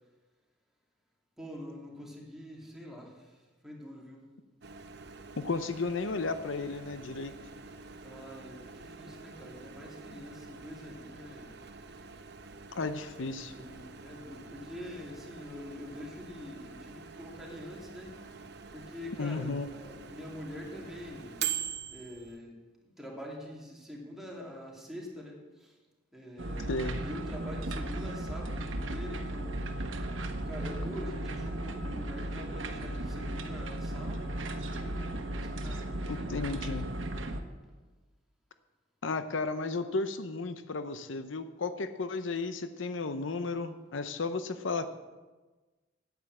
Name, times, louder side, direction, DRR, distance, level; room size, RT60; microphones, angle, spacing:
voice 1, 1.4-3.3 3.6-4.2 8.0-11.5 13.4-18.2 18.7-21.4 21.9-22.6 23.0-25.7 26.1-29.7 30.5-37.1, left 1 dB, ahead, -3 dB, 2.7 m, -45 dB
Microwave oven, 4.6-22.4, right 7 dB, 60° right, 0.9 m, -44 dB
voice 2, 5.4-7.3 12.8-13.5 19.2-19.7 26.7-27.0 36.1-36.9 39.0-44.9, left 3 dB, 75° left, 10 dB, 0.7 m, -34 dB
sound 1, 26.4-37.4, right 1 dB, 85° right, 1.1 m, -36 dB
9.6 x 9.5 x 7.6 m, 1.2 s
head